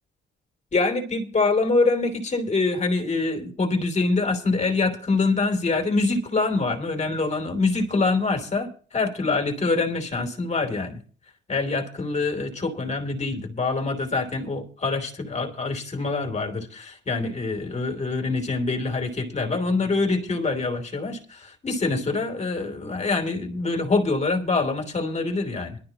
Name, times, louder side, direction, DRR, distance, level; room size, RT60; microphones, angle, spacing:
voice 1, 0.7-11.0 11.5-25.8, left 3 dB, 35° left, 4 dB, 3.1 m, -25 dB
21.0 x 12.0 x 2.9 m, 0.41 s
cardioid pair, 90°, 20 cm